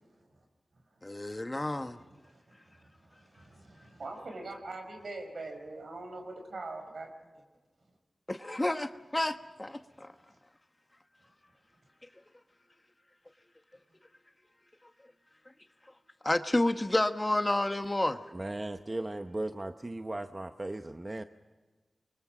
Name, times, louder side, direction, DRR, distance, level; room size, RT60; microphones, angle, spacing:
voice 1, 1.0-2.0 8.3-10.1 16.2-18.2, left 1 dB, 25° left, 1.1 m, -30 dB
voice 2, 2.0-7.3, right 2 dB, 80° right, 5.6 m, -44 dB
voice 3, 18.3-21.2, right 2 dB, 30° right, 0.8 m, -37 dB
29.0 x 23.5 x 4.9 m
wide cardioid pair, 80°, 0 cm